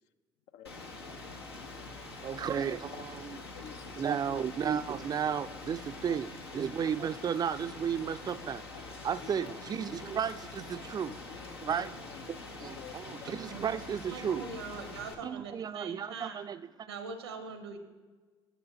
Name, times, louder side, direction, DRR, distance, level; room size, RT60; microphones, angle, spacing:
Rain, 0.6-15.1, left 3 dB, 85° left, 0.8 m, -45 dB
voice 1, 2.2-2.9 3.2-3.4 4.0-8.6 9.0-11.1 11.6-11.9 12.3-14.5 15.2-16.9, right 8 dB, 30° right, 15 dB, 0.4 m, -33 dB
voice 2, 2.9-4.1 5.6-5.8 6.1-6.2 8.7-8.8 9.2-9.9 10.1-10.3 11.1-11.5 11.8-12.2 12.8-13.6 13.8-13.9, left 10 dB, 60° left, 11 dB, 0.5 m, -51 dB
voice 3, 14.1-16.4 16.9-17.8, right 4 dB, 80° right, 9 dB, 0.8 m, -42 dB
9.2 x 6.7 x 4.0 m, 1.4 s
figure-of-eight pair, 50°, 13 cm